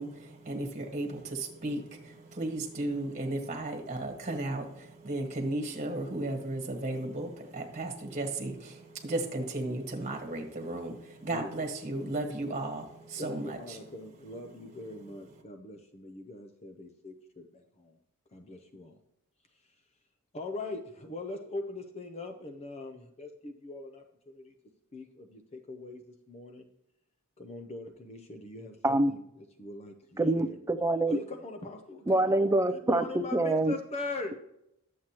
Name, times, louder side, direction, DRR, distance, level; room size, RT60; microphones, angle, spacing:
voice 1, 0.0-13.8 14.5-14.6, right 2 dB, 35° right, 3 dB, 1.5 m, -35 dB
voice 2, 11.2-11.5 13.2-17.4 17.8-17.9 18.3-18.9 20.3-24.5 24.9-26.0 26.3-26.6 27.4-30.6 31.1-34.3, left 2 dB, 30° left, 5 dB, 0.6 m, -42 dB
voice 3, 30.2-31.2 32.1-33.7, right 2 dB, 15° right, 12 dB, 0.4 m, -25 dB
11.0 x 7.5 x 2.9 m, 0.81 s
head